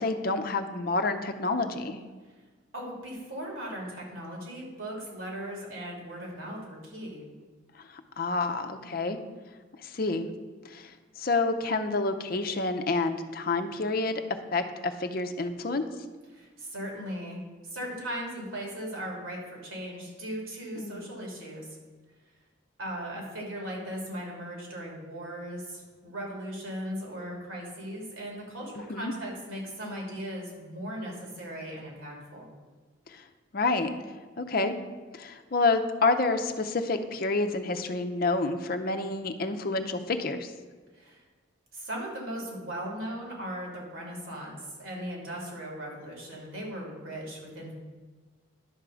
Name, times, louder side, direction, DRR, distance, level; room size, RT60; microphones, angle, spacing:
voice 1, 0.0-2.0 7.9-9.2 9.8-10.3 10.6-14.2 14.5-15.8 20.8-21.0 28.9-29.1 33.1-33.2 33.5-33.9 34.4-34.7 35.1-40.5, left 3 dB, 45° left, 7 dB, 0.6 m, -28 dB
voice 2, 2.7-7.2 16.3-21.7 22.8-32.5 40.9-41.2 41.7-47.7, equal, 85° right, -1 dB, 2.9 m, -38 dB
11.0 x 3.7 x 6.9 m, 1.4 s
head